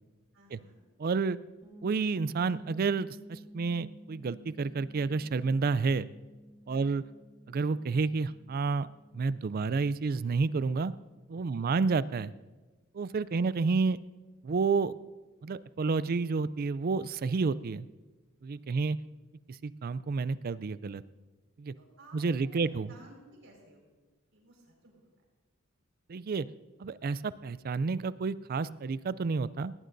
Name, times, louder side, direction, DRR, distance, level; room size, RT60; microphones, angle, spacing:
voice 1, 0.3-0.8 6.7-7.0 11.5-11.9 13.4-13.5 18.7-18.8 21.8-23.8 24.3-25.1, right 1 dB, 65° right, 0 dB, 5.0 m, -56 dB
voice 2, 1.0-1.4 1.8-6.1 6.7-7.0 7.5-8.9 9.1-10.9 11.3-12.3 12.9-14.0 14.4-14.9 15.4-17.9 18.4-19.0 19.6-21.0 21.6-21.7 22.1-22.9 26.1-26.5 26.8-29.7, right 4 dB, 45° right, 17 dB, 0.4 m, -30 dB
sound 1, 1.6-11.3, equal, 25° right, 2.6 m, -53 dB
18.0 x 18.0 x 2.6 m, 1.2 s
head